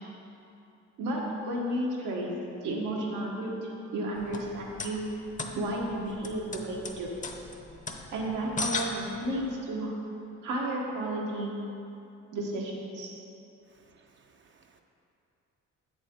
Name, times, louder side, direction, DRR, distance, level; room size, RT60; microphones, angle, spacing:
voice 1, 1.0-2.3 2.6-3.5 3.9-5.0 5.5-7.1 8.1-9.9 10.4-11.5 12.3-13.1, right 1 dB, 90° right, -2 dB, 1.4 m, -32 dB
sound 1, 4.1-9.5, left 3 dB, 25° left, 0.7 m, -38 dB
voice 2, 13.7-14.8, right 5 dB, 40° right, 4 dB, 0.5 m, -62 dB
7.9 x 7.1 x 3.7 m, 2.8 s
cardioid pair, 90°, 30 cm